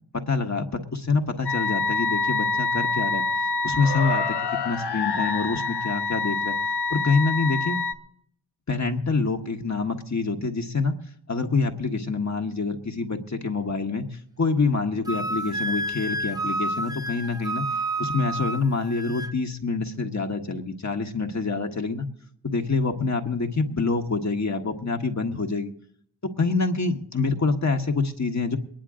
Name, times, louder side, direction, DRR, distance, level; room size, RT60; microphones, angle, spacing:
voice 1, 0.1-3.2 3.6-6.5 6.9-7.8 8.7-10.9 11.3-17.6 18.0-22.1 22.4-25.7 26.4-28.6, left 4 dB, 45° left, 3 dB, 1.5 m, -26 dB
sound 1, 1.4-7.9, left 4 dB, 80° left, 1.1 m, -26 dB
Wind instrument woodwind instrument, 15.0-19.3, right 2 dB, 10° right, 0.7 m, -30 dB
23.0 x 10.0 x 3.8 m, 0.68 s
cardioid pair, 55°, 40 cm